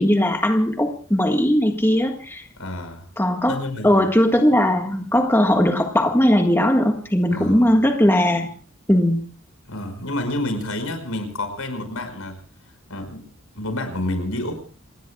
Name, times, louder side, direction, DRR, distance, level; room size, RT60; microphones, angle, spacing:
voice 1, 0.0-2.4 3.2-3.5 3.8-8.5 8.9-9.2, left 1 dB, 10° left, 3 dB, 1.6 m, -18 dB
voice 2, 2.6-3.1 3.5-4.1 7.3-7.8 9.7-12.4 12.9-13.2 13.5-14.6, left 1 dB, 85° left, 8 dB, 5.5 m, -29 dB
28.0 x 20.0 x 2.3 m, 0.40 s
head